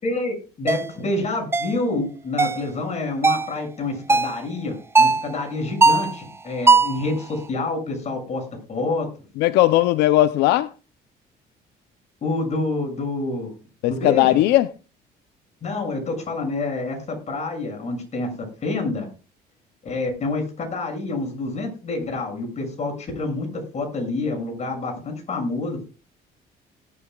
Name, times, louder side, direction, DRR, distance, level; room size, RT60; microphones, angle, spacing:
voice 1, 0.0-8.4 8.7-9.1 12.2-13.5 13.9-14.4 15.6-18.3 18.6-19.1 19.8-23.5 23.7-25.8, left 2 dB, 40° left, 6.8 m, -27 dB
sound 1, 0.7-0.9 1.5-1.8 2.4-2.7 3.2-3.5 4.1-4.4 4.9-5.2 5.8-6.1 6.7-7.0, right 3 dB, 15° right, 0.6 m, -17 dB
voice 2, 9.4-10.7 13.8-14.7, left 15 dB, 90° left, 0.7 m, -18 dB
18.0 x 12.0 x 2.4 m
cardioid pair, 110°, 17 cm